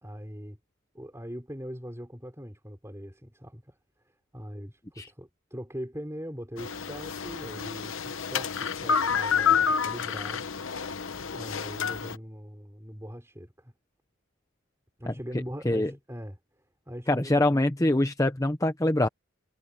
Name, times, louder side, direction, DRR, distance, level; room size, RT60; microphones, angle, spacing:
voice 1, 0.0-0.6 0.9-3.8 4.3-10.5 11.3-13.7 15.0-16.4 16.9-17.4, equal, 15° right, 4.4 m, -41 dB
sound 1, 6.6-12.2, left 6 dB, 65° left, 0.9 m, -29 dB
voice 2, 17.1-19.1, left 1 dB, 15° left, 0.8 m, -24 dB
head